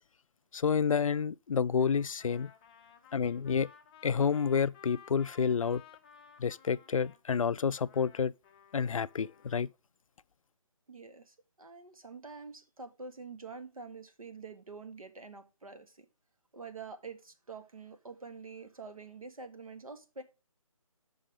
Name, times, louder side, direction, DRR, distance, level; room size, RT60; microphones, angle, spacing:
voice 1, 0.5-2.5 3.1-3.7 4.0-5.8 6.4-8.3 8.7-9.7, left 6 dB, 70° left, 0.4 m, -29 dB
Trumpet, 1.7-7.2 7.7-9.7, left 7 dB, 15° left, 0.5 m, -57 dB
voice 2, 10.9-16.1 16.5-20.2, right 4 dB, 75° right, 1.8 m, -47 dB
7.3 x 5.6 x 6.3 m
figure-of-eight pair, 155°, 18 cm